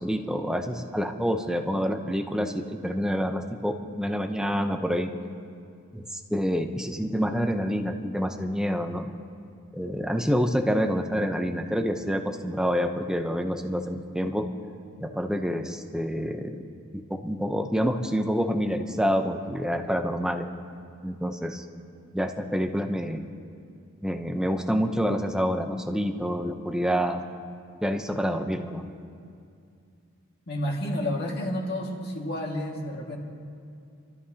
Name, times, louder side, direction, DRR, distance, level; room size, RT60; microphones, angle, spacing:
voice 1, 0.0-5.1 5.9-9.1 9.7-14.5 15.0-16.6 16.9-20.5 21.0-21.6 22.1-23.2 24.0-27.2 27.8-28.8, equal, 5° right, 5 dB, 0.7 m, -27 dB
voice 2, 30.5-33.2, left 1 dB, 50° left, -1 dB, 2.0 m, -30 dB
29.5 x 13.0 x 2.9 m, 2.4 s
head